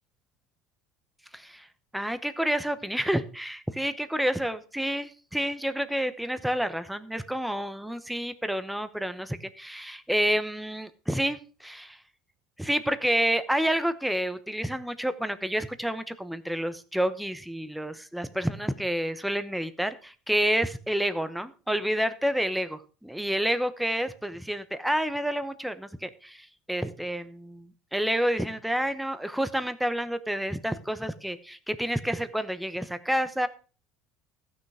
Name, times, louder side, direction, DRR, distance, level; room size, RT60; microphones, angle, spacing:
voice 1, 1.3-1.7 1.9-12.0 12.6-33.5, equal, ahead, 12 dB, 0.9 m, -29 dB
14.0 x 6.5 x 4.9 m, 0.37 s
cardioid pair, 130°, 0 cm